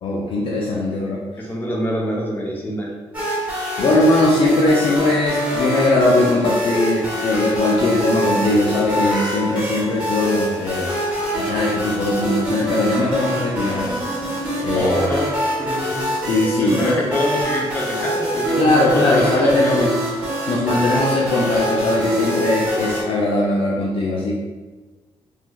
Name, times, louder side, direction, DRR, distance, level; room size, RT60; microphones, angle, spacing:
voice 1, 0.0-1.2 3.8-10.9 11.3-13.9 14.6-14.9 16.2-17.0 18.6-20.0 20.5-24.4, left 2 dB, 55° left, -3 dB, 0.4 m, -19 dB
voice 2, 1.4-2.9 14.7-15.3 15.6-16.0 16.6-19.9, equal, 20° left, -2 dB, 0.6 m, -25 dB
sound 1, 3.1-23.0, equal, 10° right, 1.4 m, -25 dB
3.1 x 2.9 x 2.2 m, 1.3 s
cardioid pair, 110°, 11 cm